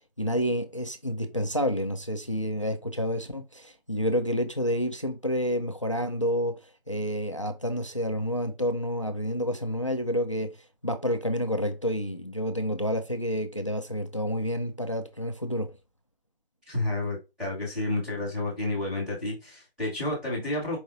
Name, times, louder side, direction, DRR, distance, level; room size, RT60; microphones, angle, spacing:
voice 1, 0.2-6.6 6.9-10.6 10.8-15.7, equal, 30° left, 0.4 m, -29 dB
voice 2, 16.7-20.8, left 2 dB, ahead, 1.2 m, -30 dB
4.8 x 3.9 x 2.6 m
figure-of-eight pair, 165°, 30 cm